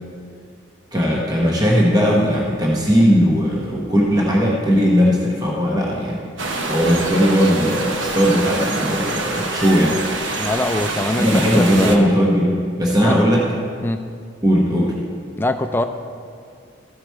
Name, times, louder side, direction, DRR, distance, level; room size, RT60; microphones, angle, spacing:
voice 1, 0.9-6.2 6.7-10.0 11.2-12.5 12.8-13.5 14.4-15.0, equal, 20° right, -4 dB, 1.0 m, -17 dB
sound 1, 6.4-12.0, right 2 dB, 75° right, 0.9 m, -25 dB
voice 2, 10.4-12.2 12.9-13.2 13.8-14.0 15.4-15.8, left 1 dB, 10° left, 7 dB, 0.3 m, -23 dB
14.0 x 4.9 x 4.5 m, 2.3 s
head